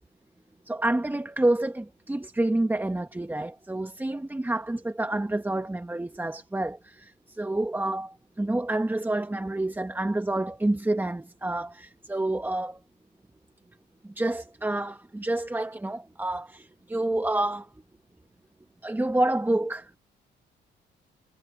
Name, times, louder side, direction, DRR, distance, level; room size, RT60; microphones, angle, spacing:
voice 1, 0.7-7.1 7.4-12.8 14.2-17.7 18.8-20.0, right 1 dB, 10° right, 1.2 m, -28 dB
cardioid pair, 90°, 20 cm